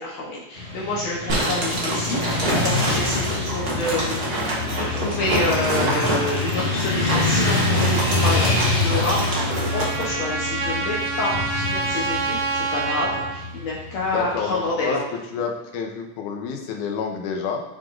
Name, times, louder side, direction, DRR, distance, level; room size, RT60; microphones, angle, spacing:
voice 1, 0.0-4.3 4.7-15.0, left 2 dB, 65° left, -4 dB, 2.0 m, -28 dB
Motorcycle / Traffic noise roadway noise, 0.5-14.7, left 3 dB, 35° left, 2.9 m, -26 dB
sound 1, 1.3-10.1, right 1 dB, 40° right, 1.8 m, -26 dB
Trumpet, 8.8-13.4, right 3 dB, 90° right, 2.4 m, -27 dB
voice 2, 14.1-17.6, left 5 dB, 90° left, 3 dB, 2.2 m, -28 dB
7.4 x 6.7 x 2.5 m, 1.0 s
omnidirectional pair, 3.6 m